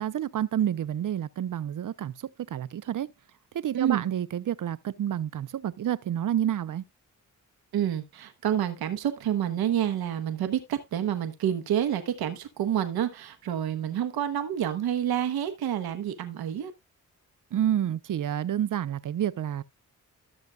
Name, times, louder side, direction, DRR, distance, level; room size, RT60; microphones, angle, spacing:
voice 1, 0.0-2.1 2.5-3.1 3.5-6.8 17.5-19.6, right 10 dB, 60° right, 0.7 m, -29 dB
voice 2, 3.7-4.1 7.7-16.7, right 10 dB, 85° right, 1.1 m, -28 dB
13.5 x 6.5 x 2.4 m
supercardioid pair, 50°, 36 cm